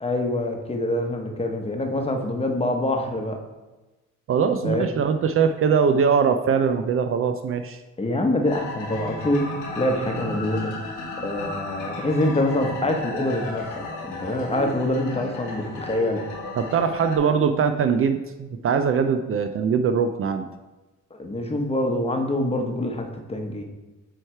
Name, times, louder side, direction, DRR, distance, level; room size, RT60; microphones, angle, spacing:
voice 1, 0.0-3.4 4.6-4.9 8.0-10.7 11.2-16.2 21.2-23.6, left 1 dB, 20° left, 3 dB, 0.9 m, -25 dB
voice 2, 4.3-7.8 16.6-20.5, right 6 dB, 45° right, 8 dB, 0.4 m, -22 dB
sound 1, 8.5-17.2, left 2 dB, 90° left, 1.3 m, -34 dB
7.6 x 3.2 x 4.4 m, 1.1 s
cardioid pair, 90°, 30 cm